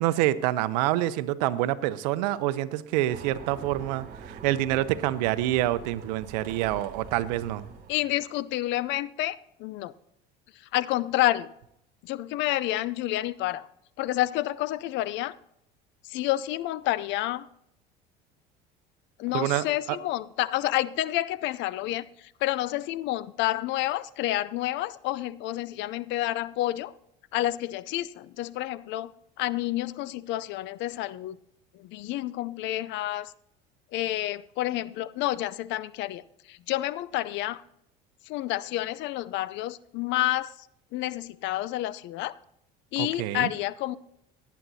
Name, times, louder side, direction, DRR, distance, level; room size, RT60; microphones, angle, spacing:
voice 1, 0.0-7.6 19.3-20.0 43.0-43.5, right 14 dB, 80° right, 15 dB, 0.7 m, -27 dB
sound 1, 3.1-8.3, right 6 dB, 45° right, 2.6 m, -44 dB
voice 2, 7.9-9.9 10.7-11.5 12.0-13.7 14.0-15.3 16.1-17.5 19.2-22.1 22.4-26.9 27.3-29.1 29.4-31.4 31.8-33.3 33.9-37.6 38.3-40.5 40.9-42.4 42.9-44.0, left 15 dB, 60° left, 18 dB, 0.5 m, -29 dB
18.0 x 9.4 x 2.7 m, 0.78 s
supercardioid pair, 90°, 21 cm